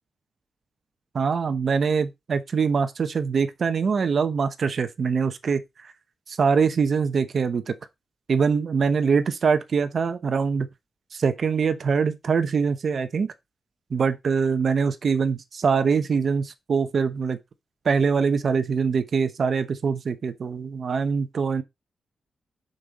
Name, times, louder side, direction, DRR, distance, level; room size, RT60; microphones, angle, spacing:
voice 1, 1.1-5.9 6.3-7.7 8.3-10.7 11.1-13.3 13.9-17.4 17.8-21.6, right 5 dB, 50° right, 0.9 m, -23 dB
6.7 x 5.4 x 4.1 m
wide cardioid pair, 160°, 0 cm